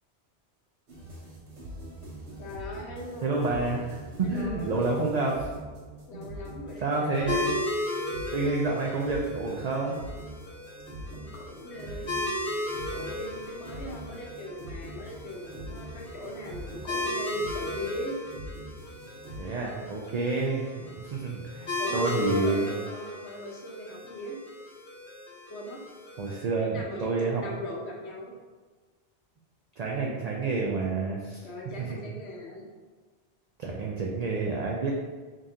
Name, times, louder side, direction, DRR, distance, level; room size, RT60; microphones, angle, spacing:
sound 1, 0.9-19.4, right 1 dB, 80° right, 1.2 m, -43 dB
voice 1, 2.4-3.8 4.2-5.1 6.1-7.5 11.1-12.3 12.9-18.2 20.3-20.4 21.8-24.4 25.5-25.8 26.5-28.3 31.4-32.6, left 1 dB, 80° left, -3 dB, 1.2 m, -39 dB
voice 2, 3.2-3.9 4.2-5.3 6.1-6.2 6.8-7.5 8.3-10.0 19.4-22.7 26.2-27.4 29.8-31.4 31.8-32.0 33.6-34.9, right 3 dB, 55° right, -2 dB, 0.4 m, -29 dB
sound 2, 7.3-26.4, left 1 dB, 60° left, 0.8 m, -36 dB
5.2 x 2.5 x 2.7 m, 1.4 s
omnidirectional pair, 1.1 m